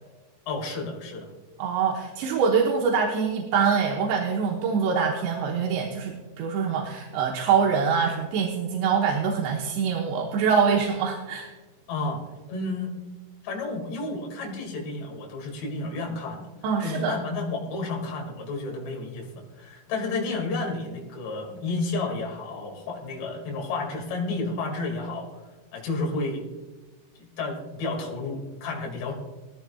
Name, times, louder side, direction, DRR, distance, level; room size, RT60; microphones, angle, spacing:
voice 1, 0.5-1.3 11.9-12.2 12.5-12.9 13.4-16.5 16.8-25.3 25.7-26.5 27.2-29.1, left 3 dB, 60° left, 0 dB, 4.1 m, -31 dB
voice 2, 1.6-11.5 16.6-17.2, right 6 dB, 70° right, -1 dB, 2.9 m, -24 dB
20.0 x 14.0 x 2.3 m, 1.3 s
omnidirectional pair, 6.0 m